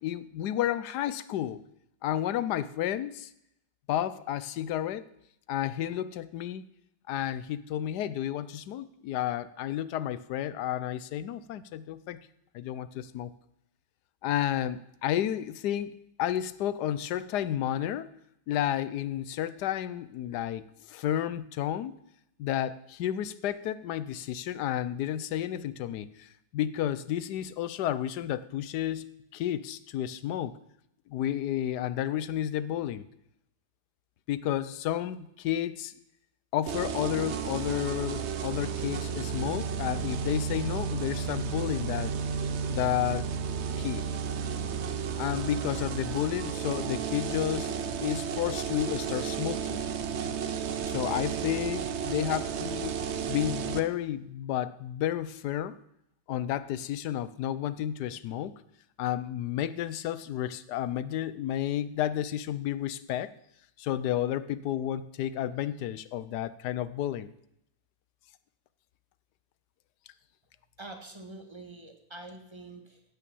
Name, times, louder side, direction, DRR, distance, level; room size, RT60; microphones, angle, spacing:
voice 1, 0.0-1.6 2.0-3.3 3.9-5.0 5.5-6.6 7.1-12.2 12.5-13.3 14.2-18.1 18.5-22.0 22.4-30.6 31.1-33.1 34.3-35.9 36.5-42.1 42.7-43.3 43.8-44.1 45.2-49.9 50.8-52.9 53.3-55.8 56.3-58.5 59.0-63.3 63.8-67.3, left 11 dB, 85° left, 16 dB, 1.2 m, -31 dB
sound 1, 36.7-53.8, right 7 dB, 55° right, 0.9 m, -33 dB
voice 2, 70.8-73.0, right 2 dB, 15° right, 4 dB, 1.6 m, -45 dB
15.5 x 5.8 x 7.0 m, 0.80 s
omnidirectional pair, 1.7 m